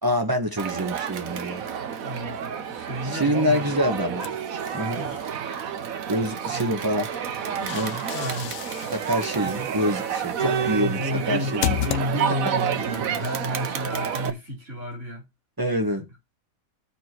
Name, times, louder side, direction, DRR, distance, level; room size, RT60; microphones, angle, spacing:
voice 1, 0.0-1.6 3.0-4.3 4.7-5.0 6.1-7.1 7.6-8.0 8.9-11.0 11.3-11.8 15.6-16.0, equal, 15° right, 1.2 m, -26 dB
Crowd, 0.6-14.3, right 8 dB, 75° right, 1.3 m, -30 dB
voice 2, 2.0-3.7 4.9-5.2 6.4-6.8 8.1-8.6 9.5-9.7 10.4-15.3 15.9-16.0, equal, 55° right, 4.6 m, -32 dB
sound 1, 4.2-5.3 7.2-12.6, left 13 dB, 75° left, 1.1 m, -34 dB
15.0 x 5.0 x 3.0 m
omnidirectional pair, 1.5 m